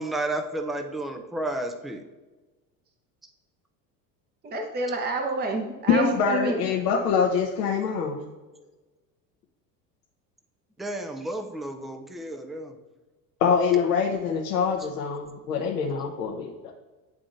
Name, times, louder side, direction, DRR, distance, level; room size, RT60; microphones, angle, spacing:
voice 1, 0.0-2.0 10.8-12.8, right 1 dB, ahead, 6 dB, 0.4 m, -32 dB
voice 2, 4.4-6.6, right 2 dB, 20° right, 3 dB, 0.8 m, -28 dB
voice 3, 5.9-8.2 13.4-16.7, left 6 dB, 75° left, -2 dB, 1.0 m, -24 dB
11.0 x 3.8 x 2.5 m, 1.2 s
hypercardioid pair, 80°, 47 cm